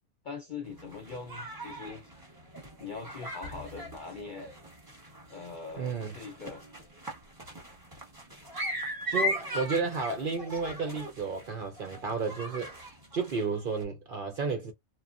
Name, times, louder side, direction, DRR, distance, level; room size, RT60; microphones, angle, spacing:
voice 1, 0.2-2.1 2.8-4.5 5.3-6.6, left 4 dB, 50° left, 0.6 m, -42 dB
sound 1, 0.6-13.8, equal, 15° right, 0.9 m, -39 dB
voice 2, 5.8-6.1 9.1-12.8 13.1-14.7, right 4 dB, 60° right, 0.5 m, -32 dB
3.0 x 2.3 x 2.4 m
omnidirectional pair, 1.5 m